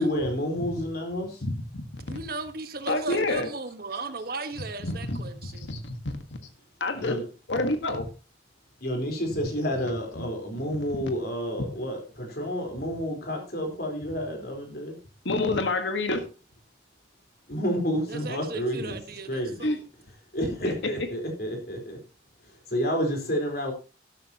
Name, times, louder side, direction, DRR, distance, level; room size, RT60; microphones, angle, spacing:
voice 1, 0.0-1.4 7.0-7.2 8.8-14.9 17.5-19.0 19.3-19.6 20.3-22.0 22.7-23.7, equal, 55° left, 3 dB, 4.2 m, -29 dB
voice 2, 1.4-2.2 2.9-3.5 4.8-5.9 6.8-7.2 7.5-8.1 9.3-9.4 9.7-10.3 10.9-11.1 15.2-16.2 19.6-19.8 20.6-21.1, left 2 dB, 80° left, 7 dB, 1.5 m, -29 dB
voice 3, 2.1-5.7 18.1-19.8, right 3 dB, 55° right, 9 dB, 1.4 m, -37 dB
12.5 x 12.0 x 2.9 m, 0.33 s
head